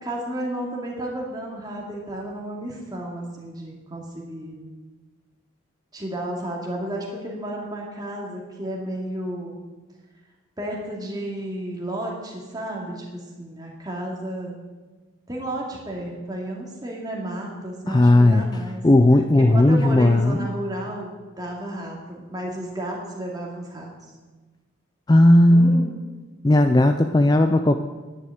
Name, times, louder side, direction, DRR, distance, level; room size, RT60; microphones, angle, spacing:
voice 1, 0.0-4.6 5.9-9.6 10.6-14.5 15.3-18.8 19.4-23.9 25.5-26.0, right 1 dB, 20° right, -2 dB, 2.3 m, -32 dB
voice 2, 17.9-18.4 18.8-20.4 25.1-25.8 26.4-27.8, left 1 dB, 20° left, 7 dB, 0.4 m, -15 dB
10.5 x 6.5 x 9.2 m, 1.3 s
head